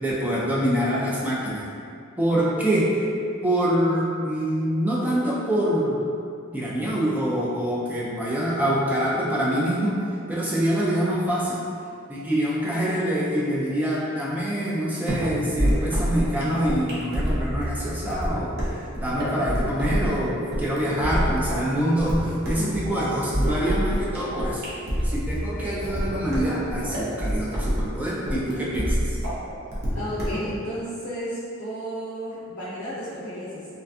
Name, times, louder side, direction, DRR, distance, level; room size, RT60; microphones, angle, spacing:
voice 1, 0.0-1.7 2.2-3.1 3.4-6.0 6.5-10.0 10.3-11.6 12.1-24.6 25.0-29.2, equal, 10° right, -6 dB, 0.3 m, -25 dB
sound 1, 15.1-30.5, equal, 50° right, 0.6 m, -27 dB
voice 2, 29.9-33.7, equal, 55° left, -9 dB, 0.5 m, -33 dB
2.5 x 2.2 x 2.4 m, 2.4 s
head